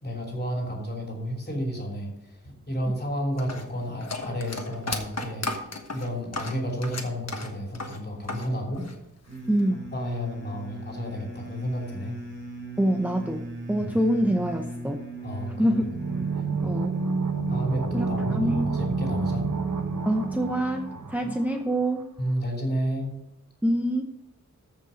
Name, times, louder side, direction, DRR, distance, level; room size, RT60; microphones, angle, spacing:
voice 1, 0.0-2.4 2.7-5.5 5.9-8.9 9.9-12.2 13.8-13.9 15.2-15.8 16.3-16.5 17.5-19.5 22.2-23.2, equal, 30° left, 0 dB, 3.1 m, -31 dB
sound 1, 3.4-8.5 8.7-9.6, left 3 dB, 55° left, 1.4 m, -34 dB
sound 2, 9.3-21.2, equal, 35° right, 3.0 m, -38 dB
voice 2, 12.8-15.0 15.6-15.8 16.6-16.9 17.9-18.7 20.1-22.1 23.6-24.0, right 1 dB, 5° right, 3 dB, 0.7 m, -25 dB
sound 3, 15.9-21.6 21.8-21.9, right 5 dB, 80° right, 1.0 m, -29 dB
14.0 x 5.6 x 5.1 m, 0.85 s
wide cardioid pair, 100°, 31 cm